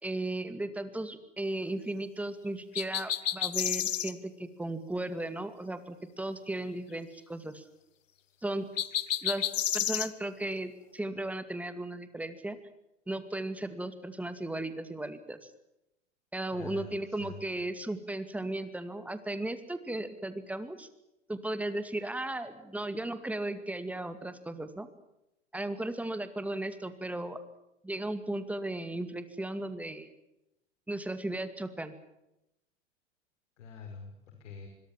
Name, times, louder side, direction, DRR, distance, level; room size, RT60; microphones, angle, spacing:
voice 1, 0.0-7.6 8.4-8.7 9.2-9.5 9.7-12.6 13.1-15.5 16.3-20.9 21.3-24.9 25.5-27.4 27.8-30.1 30.9-31.9, right 1 dB, 5° right, 10 dB, 2.3 m, -36 dB
sound 1, 2.7-4.1 8.8-10.1, left 10 dB, 90° left, 1.5 m, -30 dB
voice 2, 16.5-17.6 33.6-34.7, left 6 dB, 70° left, 4 dB, 5.7 m, -46 dB
25.5 x 22.5 x 7.4 m, 0.88 s
hypercardioid pair, 130°, 37 cm